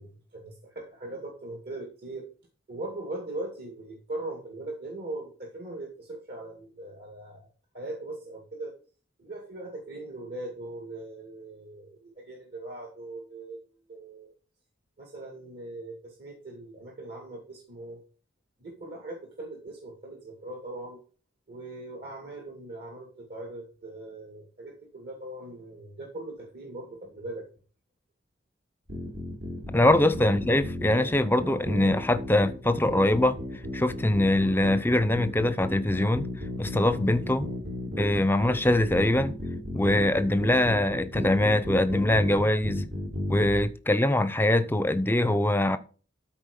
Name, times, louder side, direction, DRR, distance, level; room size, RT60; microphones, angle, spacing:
voice 1, 0.0-2.3 2.7-7.5 7.7-8.8 9.2-13.6 13.9-14.3 15.0-18.0 18.6-21.0 21.5-27.5 30.2-30.4, right 2 dB, 55° right, 2.2 m, -40 dB
sound 1, 28.9-43.6, left 1 dB, 75° right, 4.1 m, -34 dB
voice 2, 29.7-33.4 33.7-36.3 36.6-37.5 38.0-39.3 39.7-42.8 43.3-45.8, left 1 dB, 10° left, 0.6 m, -23 dB
13.0 x 4.5 x 5.4 m
head